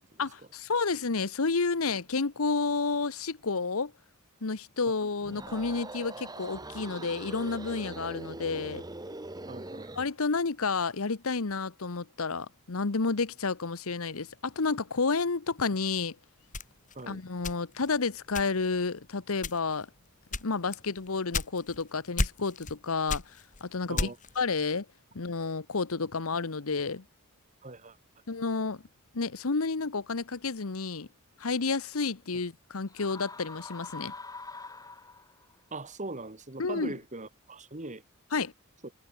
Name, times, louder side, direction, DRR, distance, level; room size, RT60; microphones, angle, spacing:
voice 1, 0.2-3.9 4.4-8.8 10.0-16.1 17.1-19.9 20.4-23.2 23.6-24.8 25.1-27.0 28.3-28.8 29.1-31.1 31.4-34.1 36.6-36.9 38.3-38.5, left 4 dB, 80° left, 1.0 m, -30 dB
sound 1, 5.2-10.1, right 2 dB, 20° right, 1.3 m, -42 dB
voice 2, 9.5-9.9 17.0-17.2 23.9-24.2 27.6-28.0 35.7-38.0, right 2 dB, 35° right, 2.3 m, -40 dB
sound 2, 16.5-17.9 18.3-18.8 19.4-19.8 20.3-21.8 22.2-22.8 23.1-24.4, left 3 dB, 35° left, 2.2 m, -33 dB
sound 3, 32.9-35.5, left 3 dB, 15° left, 1.7 m, -44 dB
head